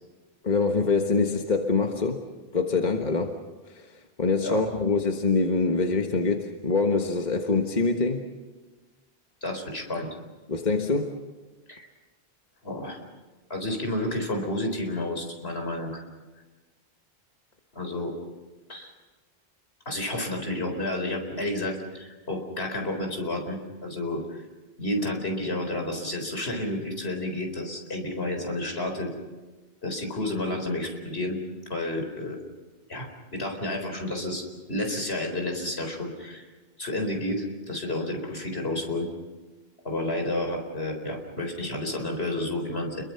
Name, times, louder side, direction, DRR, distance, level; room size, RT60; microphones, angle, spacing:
voice 1, 0.4-2.2 2.5-3.4 3.7-3.9 4.2-8.2 10.5-11.2, left 3 dB, 45° left, 3 dB, 1.6 m, -24 dB
voice 2, 9.4-10.1 11.7-11.9 12.6-13.0 13.5-16.0 17.7-18.1 18.7-18.9 19.9-24.4 24.8-29.1 29.8-31.4 31.7-32.4 32.9-33.1 33.3-36.4 36.8-39.1 39.8-43.0, left 1 dB, 70° left, 3 dB, 4.6 m, -30 dB
29.5 x 22.5 x 5.7 m, 1.3 s
omnidirectional pair, 1.1 m